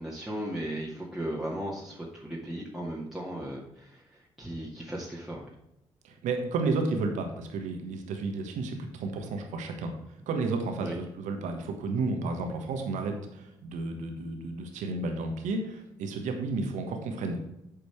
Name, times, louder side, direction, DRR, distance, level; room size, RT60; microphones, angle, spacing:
voice 1, 0.0-5.5 10.8-10.9, right 1 dB, 5° right, -5 dB, 2.1 m, -36 dB
voice 2, 6.0-9.9 10.3-17.4, right 3 dB, 70° right, 4 dB, 1.4 m, -32 dB
8.9 x 5.2 x 4.7 m, 0.85 s
hypercardioid pair, 45°, 13 cm